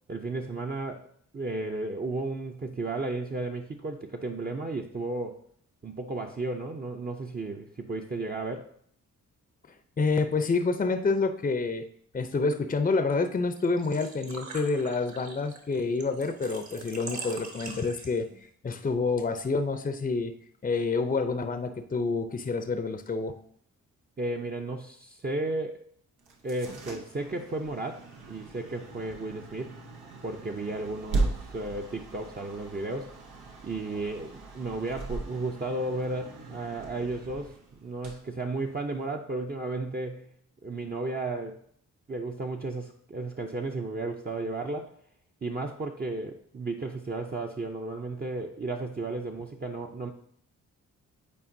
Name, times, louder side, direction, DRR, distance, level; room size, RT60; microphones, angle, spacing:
voice 1, 0.1-1.1 1.3-5.4 5.8-8.7 24.2-25.8 26.4-29.8 30.2-33.1 33.6-37.6 37.8-40.3 40.6-41.6 42.1-44.9 45.4-50.1, right 2 dB, 25° right, 1 dB, 0.7 m, -34 dB
voice 2, 10.0-11.8 12.1-20.3 20.6-23.3, left 4 dB, 25° left, 8 dB, 0.6 m, -28 dB
Engine / Trickle dribble / Fill (with liquid), 13.6-18.4, right 3 dB, 50° right, 1.4 m, -43 dB
sound 1, 26.2-39.1, right 3 dB, 90° right, 1.0 m, -38 dB
8.5 x 4.3 x 2.7 m, 0.63 s
supercardioid pair, 45°, 36 cm